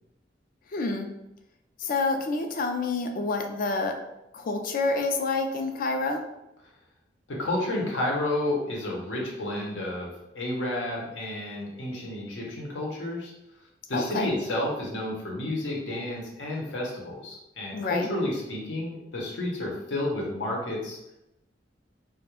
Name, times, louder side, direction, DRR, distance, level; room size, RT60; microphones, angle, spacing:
voice 1, 0.7-1.1 1.8-4.0 4.3-6.2 13.9-14.3 17.7-18.1, left 3 dB, 50° left, 4 dB, 0.3 m, -28 dB
voice 2, 7.3-13.3 13.9-21.0, left 1 dB, 80° left, -2 dB, 0.7 m, -31 dB
2.3 x 2.1 x 2.9 m, 0.90 s
head